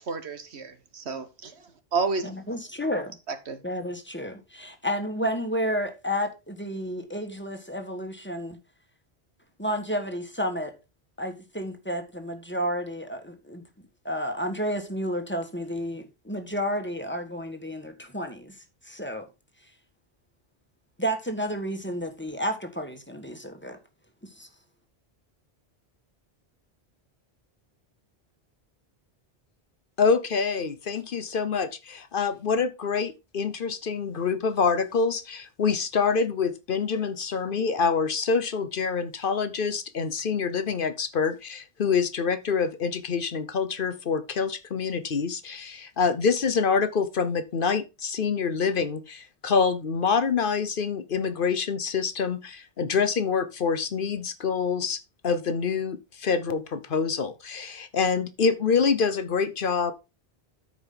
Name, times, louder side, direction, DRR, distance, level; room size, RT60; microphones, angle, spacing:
voice 1, 0.0-1.5 1.9-2.3 3.3-3.6, right 4 dB, 80° right, 1.5 m, -30 dB
voice 2, 2.2-3.2 3.6-8.6 9.6-10.8 11.2-13.6 14.0-18.6 18.8-19.3 21.0-23.8 24.2-24.5, equal, 10° left, 1.4 m, -31 dB
voice 3, 30.0-59.9, left 5 dB, 60° left, 0.9 m, -26 dB
13.0 x 5.1 x 3.8 m
omnidirectional pair, 1.1 m